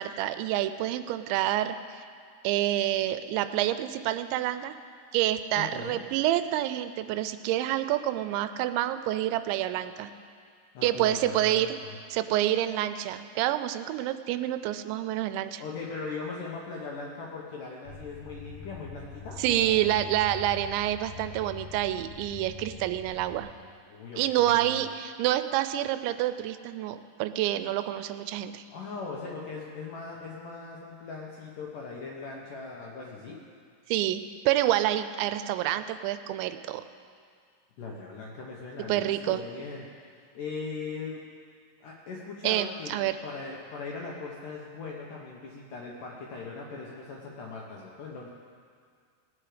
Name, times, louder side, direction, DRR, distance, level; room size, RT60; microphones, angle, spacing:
voice 1, 0.0-2.0 2.4-4.8 5.1-10.1 10.8-11.8 12.1-15.6 19.4-23.5 24.2-28.6 33.9-34.2 34.5-36.8 38.9-39.4 42.4-43.2, right 13 dB, 85° right, 11 dB, 2.9 m, -28 dB
voice 2, 5.6-6.0 10.7-11.9 15.6-19.9 23.9-24.8 28.7-33.4 37.8-39.9 40.2-41.2 41.8-48.3, left 4 dB, 75° left, -3 dB, 2.0 m, -39 dB
sound 1, 17.8-23.4, left 6 dB, 5° left, 1.9 m, -44 dB
19.5 x 9.0 x 5.0 m, 2.1 s
omnidirectional pair, 5.2 m